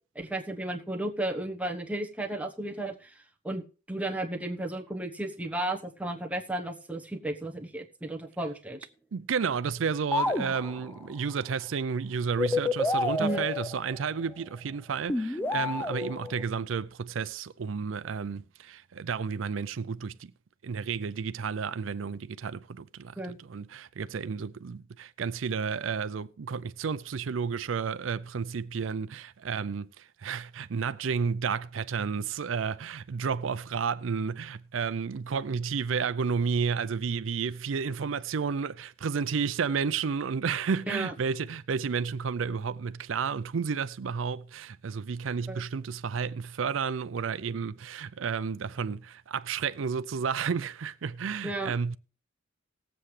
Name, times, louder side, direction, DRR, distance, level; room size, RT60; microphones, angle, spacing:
voice 1, 0.1-3.6 3.9-8.9 13.2-13.4 23.2-23.4 40.9-41.1 45.5-45.6 51.4-51.7, right 1 dB, 5° right, 1.1 m, -34 dB
voice 2, 9.1-20.3 20.6-52.0, right 6 dB, 90° right, 0.5 m, -31 dB
sound 1, 10.1-11.0 12.4-14.3 15.1-16.4, left 2 dB, 10° left, 0.5 m, -29 dB
18.5 x 7.7 x 3.3 m
head